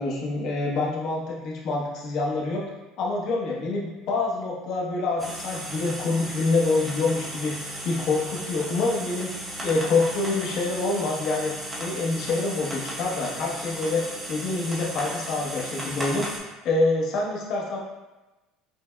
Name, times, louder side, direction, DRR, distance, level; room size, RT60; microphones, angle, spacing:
voice 1, 0.0-2.6 3.0-7.5 7.8-9.3 9.6-11.5 11.8-16.3 16.6-17.8, left 3 dB, 55° left, -3 dB, 0.9 m, -26 dB
sound 1, 5.2-16.4, right 1 dB, 20° right, 0.8 m, -35 dB
6.2 x 2.1 x 2.2 m, 1.1 s
cardioid pair, 130°, 0 cm